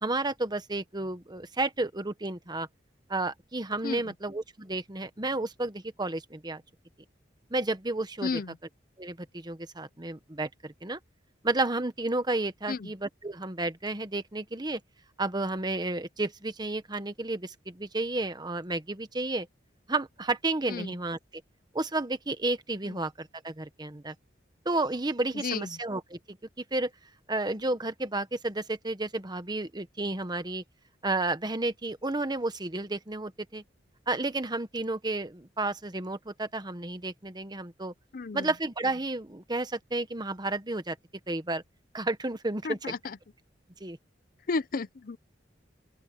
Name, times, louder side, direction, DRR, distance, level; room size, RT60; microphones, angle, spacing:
voice 1, 0.0-2.7 3.1-6.6 7.5-8.4 9.0-11.0 11.4-14.8 15.2-19.5 19.9-21.2 21.7-24.1 24.6-26.4 26.7-26.9 27.3-30.6 31.0-33.6 34.1-37.9 38.3-41.0 41.3-41.6 41.9-42.9 43.8-44.0, right 2 dB, 25° right, 1.2 m, -31 dB
voice 2, 8.2-8.6 12.7-12.9 20.7-20.9 25.3-25.7 38.1-38.5 42.6-43.2 44.5-45.2, left 4 dB, 50° left, 0.6 m, -32 dB
open air
head